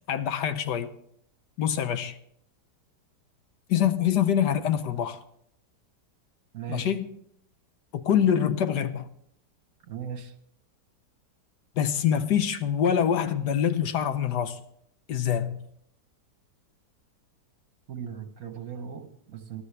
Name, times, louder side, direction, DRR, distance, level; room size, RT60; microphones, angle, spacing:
voice 1, 0.1-0.9 1.6-2.1 3.7-5.2 6.7-7.1 7.9-9.1 11.8-14.6 15.1-15.6, left 9 dB, 70° left, 1.4 m, -25 dB
voice 2, 6.5-6.9 9.9-10.3 17.9-19.6, right 7 dB, 60° right, 1.4 m, -38 dB
20.0 x 12.5 x 3.3 m
omnidirectional pair, 1.9 m